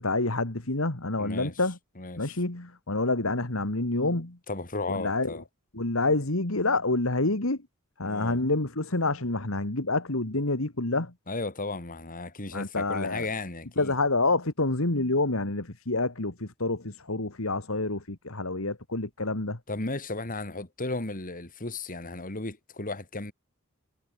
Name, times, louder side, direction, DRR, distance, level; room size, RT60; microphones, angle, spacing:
voice 1, 0.0-1.8 2.2-4.4 4.9-5.3 5.7-7.6 8.0-11.1 12.5-13.3 13.8-19.6, left 2 dB, 70° left, 2.4 m, -28 dB
voice 2, 1.2-1.5 2.0-2.3 4.5-5.4 8.0-8.4 11.3-13.9 19.7-23.3, left 2 dB, 40° left, 3.3 m, -35 dB
head